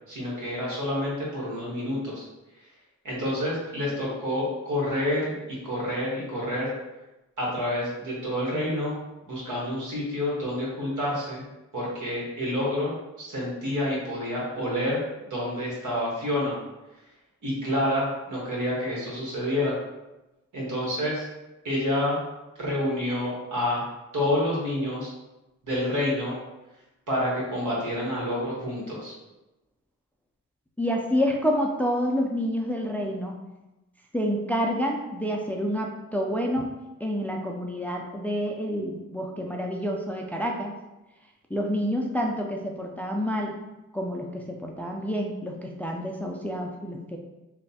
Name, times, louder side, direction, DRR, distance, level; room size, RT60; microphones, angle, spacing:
voice 1, 0.1-2.3 3.0-6.7 7.4-9.0 9.3-11.4 11.7-12.9 13.2-15.0 15.3-16.6 17.4-19.7 20.5-21.3 21.6-22.2 22.6-23.8 24.1-25.1 25.6-26.3 27.1-29.1, left 1 dB, 80° right, -5 dB, 1.4 m, -28 dB
voice 2, 30.8-33.4 34.1-36.7 37.0-40.7 41.5-43.5 43.9-47.2, equal, 5° left, 0 dB, 0.4 m, -28 dB
3.2 x 2.2 x 4.1 m, 1.0 s
cardioid pair, 85°, 30 cm